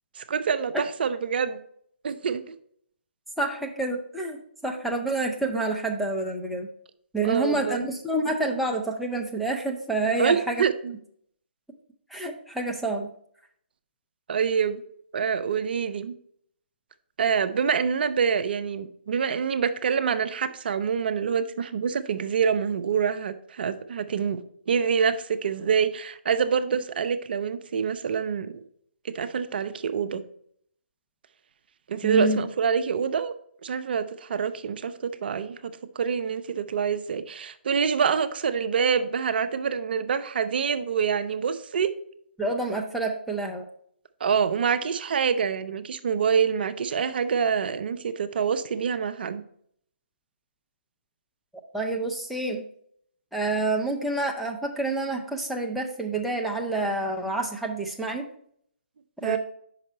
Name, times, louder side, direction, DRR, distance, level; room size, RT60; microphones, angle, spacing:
voice 1, 0.2-1.6 2.0-2.4 7.2-7.9 10.2-10.9 14.3-14.8 15.1-16.2 17.2-24.4 24.7-28.6 29.1-30.2 31.9-33.3 33.6-35.6 36.0-41.9 44.2-49.4 59.2-59.4, right 6 dB, 55° right, 11 dB, 0.5 m, -26 dB
voice 2, 3.4-6.7 7.1-10.6 12.1-13.1 32.0-32.4 42.4-43.7 51.7-52.6 53.3-58.2 59.2-59.4, right 2 dB, ahead, -1 dB, 0.5 m, -28 dB
5.4 x 4.9 x 4.2 m, 0.65 s
hypercardioid pair, 145°, 6 cm